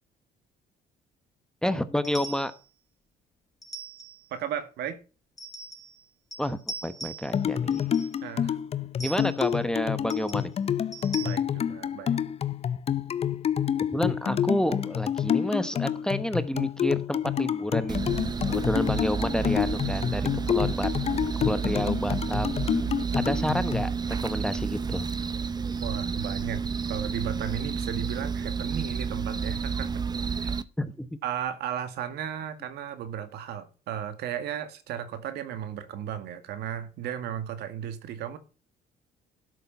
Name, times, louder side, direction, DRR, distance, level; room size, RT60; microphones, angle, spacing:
voice 1, 1.6-2.5 6.4-7.9 9.0-10.5 13.9-18.0 18.5-20.9 21.2-22.7 23.1-25.1 30.8-31.1, equal, 5° left, 1.0 m, -29 dB
sound 1, 2.0-2.6 3.6-4.3 5.4-6.0 6.3-7.4 7.7-8.2 9.0-9.6 10.1-10.5 10.9-11.3, right 3 dB, 20° left, 1.8 m, -41 dB
voice 2, 4.3-5.0 8.2-8.6 11.2-12.2 25.8-26.6 26.9-30.0 30.4-30.5 31.2-38.4, right 9 dB, 80° right, 1.9 m, -35 dB
sound 2, 7.3-23.8, left 9 dB, 35° left, 0.6 m, -28 dB
sound 3, 17.9-30.6, right 5 dB, 25° right, 0.7 m, -30 dB
12.5 x 6.8 x 5.7 m
cardioid pair, 110°, 17 cm